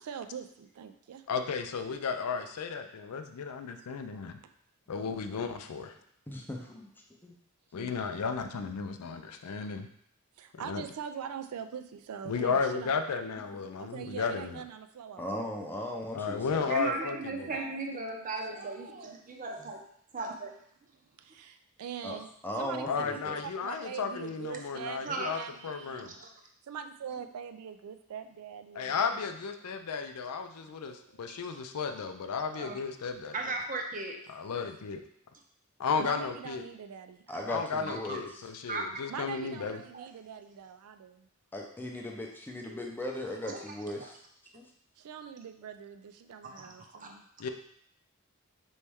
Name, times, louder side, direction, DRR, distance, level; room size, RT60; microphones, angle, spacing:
voice 1, 0.0-1.2 3.8-3.9 10.4-12.9 13.8-15.7 16.6-18.7 21.2-22.3 22.6-26.1 26.7-29.0 30.7-31.4 36.0-37.6 39.1-41.3 45.0-46.8 47.1-47.2, right 7 dB, 75° right, 8 dB, 0.4 m, -43 dB
voice 2, 1.3-4.4 4.9-5.9 7.7-9.9 10.6-10.8 12.3-14.6 16.1-17.5 22.9-26.1 28.7-33.3 34.3-35.0 35.8-36.6 37.5-39.8 47.4-47.5, left 5 dB, 80° left, 7 dB, 0.4 m, -34 dB
voice 3, 6.3-6.9 7.2-7.3 7.7-7.9 15.2-16.6 22.0-22.2 22.4-23.4 30.7-30.8 37.3-38.2 41.5-44.2 44.5-44.7, left 1 dB, 10° left, 1 dB, 0.6 m, -38 dB
voice 4, 16.7-19.8 20.1-20.5 25.0-25.4 25.7-25.8 26.1-26.3 31.3-31.4 32.5-32.8 33.3-34.2 37.9-38.2 38.7-39.0 39.5-40.1 42.7-42.8 43.4-44.1 46.4-46.5, right 3 dB, 35° right, 2 dB, 0.6 m, -37 dB
4.3 x 3.1 x 3.4 m, 0.67 s
head